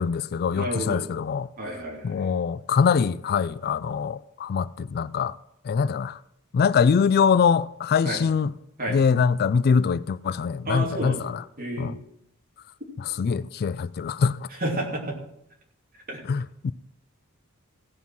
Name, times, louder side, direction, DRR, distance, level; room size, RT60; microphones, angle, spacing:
voice 1, 0.0-1.5 2.0-5.4 5.7-6.2 6.5-8.5 8.9-11.4 11.8-11.9 13.0-14.5 16.3-16.7, left 6 dB, 45° left, 0.3 m, -23 dB
voice 2, 0.5-1.0 1.6-2.3 8.0-8.2 8.8-9.0 10.6-11.2 11.6-11.9 14.5-15.0 16.1-16.2, right 1 dB, 45° right, 3.2 m, -30 dB
16.5 x 5.6 x 6.0 m
head